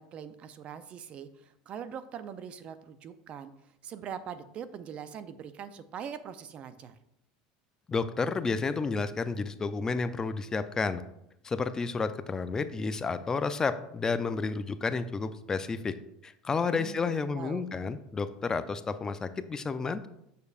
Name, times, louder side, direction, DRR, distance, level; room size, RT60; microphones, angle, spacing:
voice 1, 0.0-3.5 3.8-7.0 16.7-17.6, right 8 dB, 45° right, 13 dB, 0.5 m, -42 dB
voice 2, 7.9-11.0 11.4-15.9 16.2-20.1, left 4 dB, 20° left, 11 dB, 0.4 m, -31 dB
6.7 x 6.5 x 2.4 m, 0.79 s
supercardioid pair, 100°, 3 cm